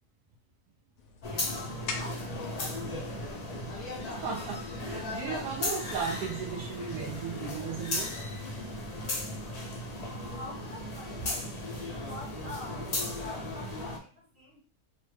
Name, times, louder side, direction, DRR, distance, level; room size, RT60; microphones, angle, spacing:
sound 1, 1.0-6.0, left 4 dB, 70° left, 0.9 m, -46 dB
sound 2, 1.2-14.0, left 2 dB, 85° left, 0.3 m, -36 dB
voice 1, 2.0-2.3 2.6-3.9 10.3-11.5 11.8-14.6, left 2 dB, 25° left, -8 dB, 1.3 m, -46 dB
voice 2, 4.1-8.2, right 6 dB, 80° right, 2 dB, 1.1 m, -36 dB
3.0 x 2.2 x 3.1 m, 0.39 s
omnidirectional pair, 1.6 m